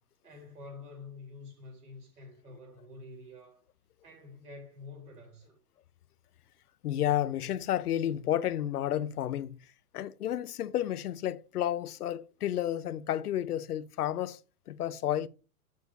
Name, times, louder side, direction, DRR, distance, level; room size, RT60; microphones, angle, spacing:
voice 1, 0.2-3.6 4.0-5.6, left 3 dB, 85° right, 4.0 m, -48 dB
voice 2, 6.8-9.6 9.9-14.4 14.7-15.3, left 11 dB, 85° left, 0.7 m, -31 dB
7.0 x 6.5 x 2.7 m
hypercardioid pair, 140°, 45 cm